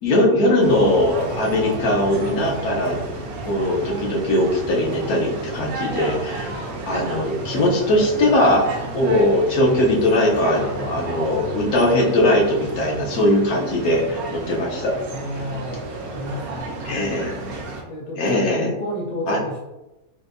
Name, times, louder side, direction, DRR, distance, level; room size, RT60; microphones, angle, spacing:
voice 1, 0.0-3.0 3.4-6.5 6.9-8.7 8.9-14.9 16.8-17.4 18.2-18.7 19.3-19.4, left 1 dB, 80° left, -2 dB, 1.3 m, -20 dB
sound 1, 0.6-17.8, right 2 dB, 80° right, 1.1 m, -32 dB
voice 2, 15.1-16.8 17.9-19.6, left 1 dB, 35° left, -4 dB, 0.7 m, -31 dB
4.4 x 2.2 x 2.5 m, 1.0 s
omnidirectional pair, 1.5 m